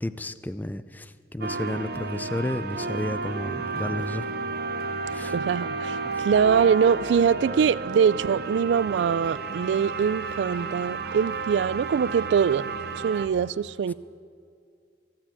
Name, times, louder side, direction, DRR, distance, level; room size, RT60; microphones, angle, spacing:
voice 1, 0.0-4.3 5.1-5.3 6.0-6.2, left 1 dB, 10° left, 0.4 m, -32 dB
sound 1, 1.4-13.3, right 4 dB, 60° right, 0.8 m, -32 dB
voice 2, 5.2-6.0 6.2-12.6 13.0-13.9, right 7 dB, 90° right, 0.3 m, -23 dB
15.5 x 7.4 x 8.5 m
head